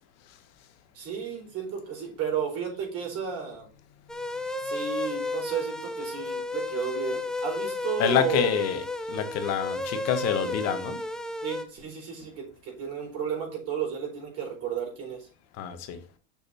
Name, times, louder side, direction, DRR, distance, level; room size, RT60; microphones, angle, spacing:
voice 1, 0.9-3.7 4.6-8.6 11.4-15.3, right 7 dB, 45° right, 0 dB, 4.4 m, -33 dB
sound 1, 4.1-11.6, left 2 dB, ahead, 0.4 m, -33 dB
voice 2, 8.0-11.0 15.6-16.0, left 8 dB, 45° left, 7 dB, 1.5 m, -27 dB
6.8 x 6.2 x 4.3 m, 0.38 s
supercardioid pair, 145°, 35 cm